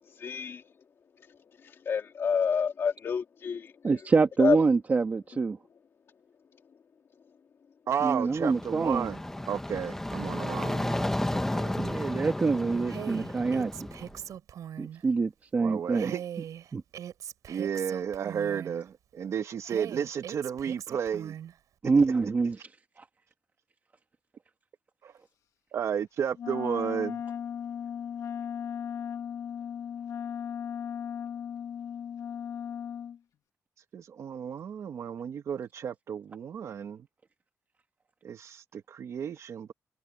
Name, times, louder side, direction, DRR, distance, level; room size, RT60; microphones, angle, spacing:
voice 1, 0.2-0.6 1.9-3.7 4.4-4.6, left 6 dB, 45° left, 2.2 m, -28 dB
voice 2, 3.8-5.6 8.0-9.1 11.8-14.1 14.8-16.1 16.7-16.8 21.8-22.6 23.0-23.1, right 4 dB, 30° right, 1.6 m, -26 dB
voice 3, 7.9-9.2 9.5-11.8 15.6-16.2 17.5-21.4 25.0-25.1 25.7-27.2 33.9-37.1 38.2-39.7, right 8 dB, 55° right, 1.3 m, -33 dB
sound 1, 8.2-14.2, left 1 dB, 5° left, 1.2 m, -33 dB
Female speech woman speaking, 12.9-15.0 15.9-18.8 19.6-21.5, right 10 dB, 75° right, 6.9 m, -41 dB
Wind instrument woodwind instrument, 26.4-33.2, left 8 dB, 70° left, 1.7 m, -36 dB
wide cardioid pair, 155°, 6 cm